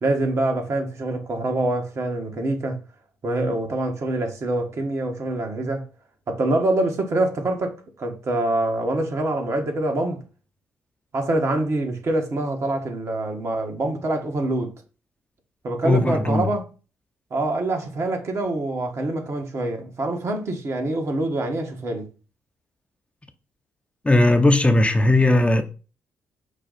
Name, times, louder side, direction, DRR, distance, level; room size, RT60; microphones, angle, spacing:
voice 1, 0.0-2.8 3.2-5.9 6.3-10.2 11.1-14.7 15.6-16.7 17.3-22.1, right 2 dB, 50° right, 1.4 m, -25 dB
voice 2, 15.8-16.5 24.0-25.6, left 2 dB, 20° left, 0.7 m, -17 dB
5.5 x 2.3 x 4.1 m
hypercardioid pair, 40°, 6 cm